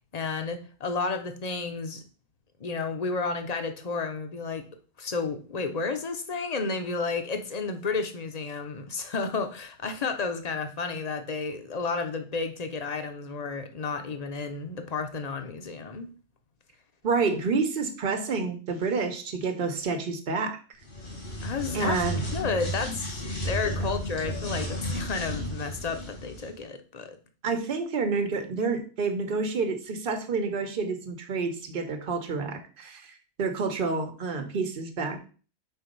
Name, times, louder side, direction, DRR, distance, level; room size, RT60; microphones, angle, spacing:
voice 1, 0.1-2.0 2.6-4.7 5.0-16.1 21.4-22.0 22.3-27.2, left 4 dB, 40° left, 7 dB, 0.8 m, -32 dB
voice 2, 17.0-20.6 21.7-22.2 27.4-33.1 33.4-35.2, right 4 dB, 50° right, 6 dB, 1.1 m, -29 dB
sound 1, 20.8-26.5, equal, 85° left, 2.2 m, -33 dB
4.5 x 4.0 x 5.3 m, 0.38 s
omnidirectional pair, 1.2 m